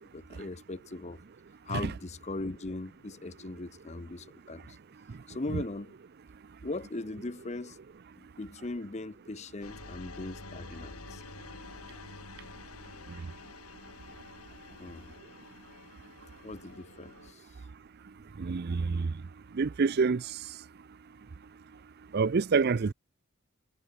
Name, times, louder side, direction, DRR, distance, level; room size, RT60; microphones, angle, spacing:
voice 1, 0.1-1.2 1.7-4.8 5.3-6.0 6.6-7.8 8.2-11.2 14.8-15.2 16.2-17.7 22.8-22.9, left 2 dB, 30° left, 0.8 m, -39 dB
sound 1, 9.6-17.3, left 3 dB, 80° left, 3.6 m, -48 dB
voice 2, 18.4-19.1 19.6-20.2 22.1-22.9, right 4 dB, 45° right, 0.4 m, -26 dB
head